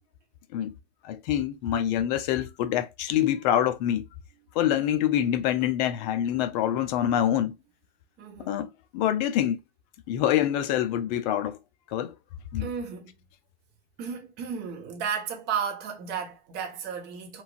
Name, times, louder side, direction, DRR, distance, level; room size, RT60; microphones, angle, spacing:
voice 1, 1.0-4.1 4.5-7.5 8.5-9.6 10.1-11.6 11.9-12.1 12.5-12.7, left 11 dB, 40° left, 0.5 m, -26 dB
voice 2, 8.2-8.5 12.6-13.1 14.0-17.4, right 7 dB, 30° right, 1.0 m, -33 dB
3.1 x 2.4 x 2.5 m
hypercardioid pair, 120°, 32 cm